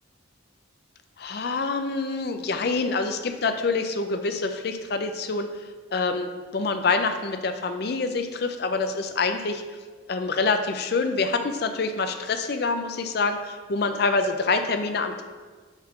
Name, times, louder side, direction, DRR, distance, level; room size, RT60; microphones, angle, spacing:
voice 1, 1.2-5.5 5.9-9.6 10.1-15.2, left 4 dB, 55° left, 7 dB, 0.5 m, -26 dB
7.2 x 3.6 x 3.7 m, 1.4 s
head